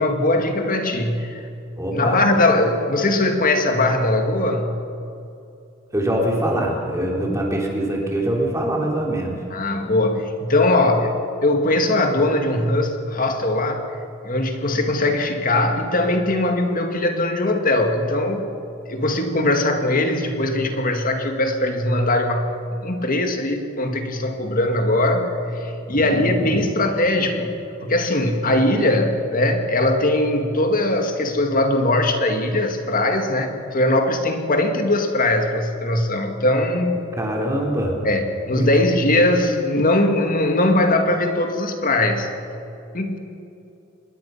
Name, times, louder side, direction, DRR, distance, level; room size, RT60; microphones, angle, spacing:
voice 1, 0.0-1.5 1.9-4.7 9.5-13.9 14.2-18.5 18.9-22.6 22.8-27.5 27.8-37.0 38.0-42.3 42.9-43.2, left 1 dB, 40° left, 5 dB, 2.1 m, -20 dB
voice 2, 1.8-2.2 5.9-9.3 25.9-26.6 37.2-37.9, right 1 dB, 15° right, -1 dB, 3.6 m, -23 dB
26.5 x 21.0 x 5.8 m, 2.7 s
head